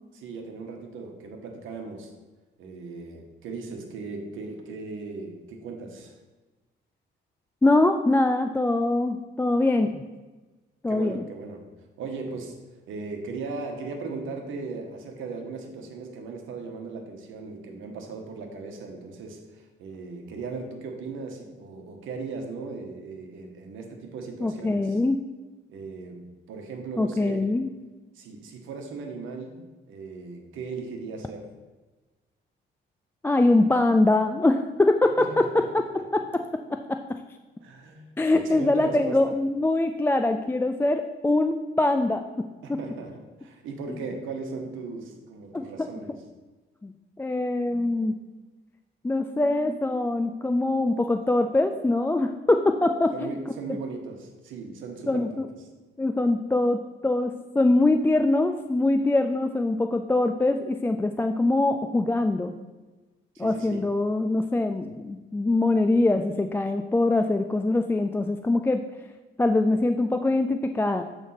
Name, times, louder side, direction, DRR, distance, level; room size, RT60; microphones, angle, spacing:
voice 1, 0.1-2.1 2.6-6.2 10.9-11.6 12.0-12.6 12.9-25.0 25.7-27.4 28.1-31.4 35.2-35.6 35.9-36.0 37.6-39.4 42.6-46.1 53.1-55.5 63.3-63.9, right 4 dB, 85° right, 3 dB, 1.2 m, -38 dB
voice 2, 7.6-10.0 10.8-11.2 24.4-25.2 27.0-27.7 33.2-37.0 38.2-42.2 42.7-42.8 45.5-45.7 46.8-46.9 47.2-48.2 49.0-53.3 55.1-55.5 56.0-62.5 63.4-68.8 69.4-71.0, left 2 dB, 10° left, 6 dB, 0.3 m, -23 dB
7.6 x 3.5 x 5.5 m, 1.2 s
cardioid pair, 90°, 20 cm